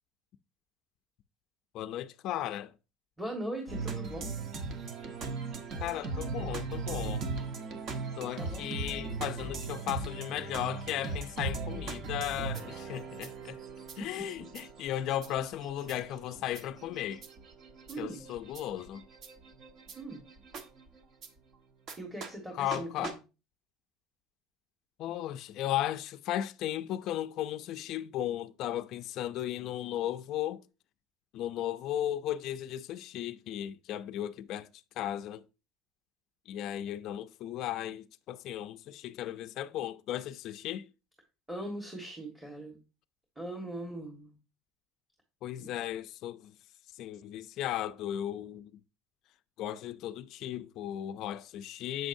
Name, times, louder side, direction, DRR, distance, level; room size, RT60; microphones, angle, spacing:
voice 1, 1.7-2.7 5.8-7.3 8.2-13.6 14.0-17.2 18.0-19.0 22.6-23.2 25.0-30.6 31.3-34.7 35.0-35.4 36.5-40.9 45.4-46.5 47.0-48.7 49.6-52.1, left 12 dB, 50° left, 0.4 m, -36 dB
voice 2, 3.2-4.3 8.4-8.7 14.0-14.2 17.9-18.2 19.9-20.2 21.9-23.2 41.5-42.8 43.3-44.3 45.6-45.7, right 1 dB, 10° right, 1.5 m, -40 dB
sound 1, 3.7-21.3 21.9-22.0 22.2-22.3 22.7-22.8 23.0-23.1, right 4 dB, 45° right, 1.2 m, -39 dB
7.7 x 6.1 x 2.6 m
cardioid pair, 140°, 0 cm